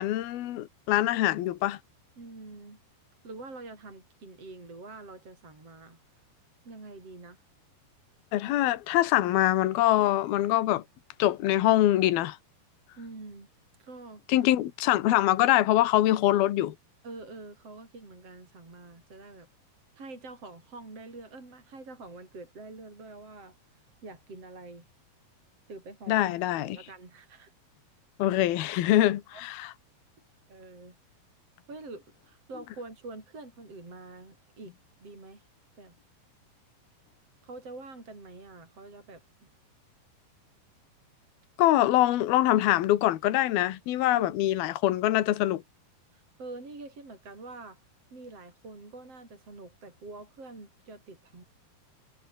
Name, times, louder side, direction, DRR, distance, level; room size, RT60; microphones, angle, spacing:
voice 1, 0.0-1.8 8.3-10.8 11.2-12.4 14.3-16.7 26.1-26.8 28.2-29.7 41.6-45.6, left 14 dB, 70° left, 3.2 m, -24 dB
voice 2, 2.2-2.8 3.2-6.0 6.6-7.4 13.0-13.5 13.8-14.4 17.0-19.5 20.0-23.6 24.0-24.9 25.7-27.5 29.3-29.4 30.5-31.0 31.7-34.7 35.0-35.4 35.8-35.9 37.4-39.2 44.1-44.4 46.1-47.8 48.1-51.4, right 3 dB, 35° right, 8.1 m, -46 dB
omnidirectional pair, 4.8 m